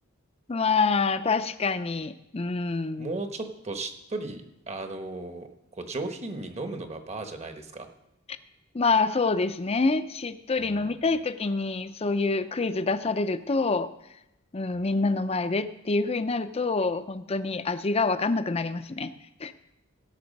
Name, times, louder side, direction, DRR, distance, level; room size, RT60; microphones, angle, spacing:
voice 1, 0.5-3.2 8.7-13.9 14.5-19.1 19.4-19.5, left 3 dB, 30° left, 11 dB, 0.6 m, -26 dB
voice 2, 3.0-7.9 10.6-10.9, right 2 dB, 35° right, 6 dB, 1.1 m, -36 dB
16.5 x 6.1 x 5.3 m, 0.88 s
head